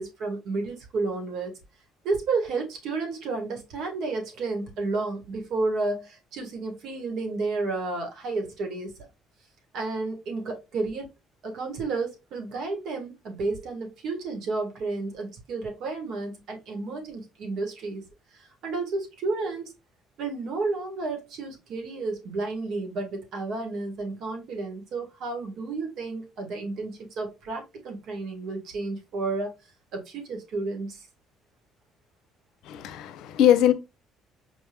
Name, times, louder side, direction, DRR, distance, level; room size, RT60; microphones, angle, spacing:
voice 1, 0.0-1.5 2.0-8.9 9.7-11.1 11.4-18.0 18.4-19.7 20.2-29.5 29.9-31.1, right 3 dB, 65° right, 1.9 m, -31 dB
voice 2, 32.7-33.7, left 10 dB, 75° left, 0.7 m, -21 dB
5.1 x 3.5 x 2.4 m
supercardioid pair, 80°, 0 cm